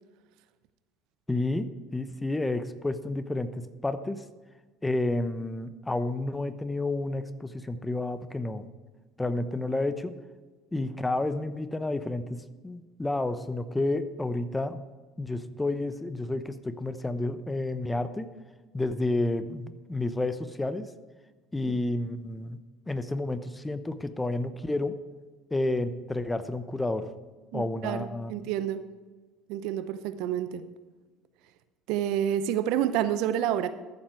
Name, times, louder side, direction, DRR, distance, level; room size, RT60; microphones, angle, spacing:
voice 1, 1.3-4.2 4.8-8.7 9.2-10.1 10.7-14.8 15.2-18.3 18.7-20.9 21.5-22.6 22.9-25.0 25.5-27.1 27.5-28.5, left 2 dB, 15° left, 12 dB, 0.9 m, -30 dB
voice 2, 27.5-28.8 29.5-30.7 31.9-33.7, right 10 dB, 65° right, 12 dB, 0.7 m, -29 dB
14.0 x 7.4 x 4.7 m, 1.3 s
hypercardioid pair, 65°, 0 cm